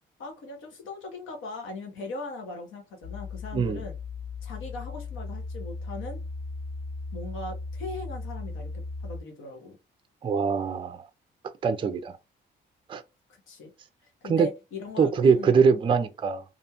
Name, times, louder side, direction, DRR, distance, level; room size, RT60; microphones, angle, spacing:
voice 1, 0.2-3.9 4.4-6.2 7.1-9.8 13.3-13.7 14.2-15.7, left 3 dB, 90° left, 1.0 m, -39 dB
sound 1, 3.0-9.2, left 3 dB, 50° left, 0.5 m, -37 dB
voice 2, 10.2-11.1 11.4-12.2 12.9-13.0 14.3-14.5 15.0-16.4, right 5 dB, 25° right, 0.4 m, -23 dB
2.6 x 2.2 x 2.8 m
cardioid pair, 90°, 20 cm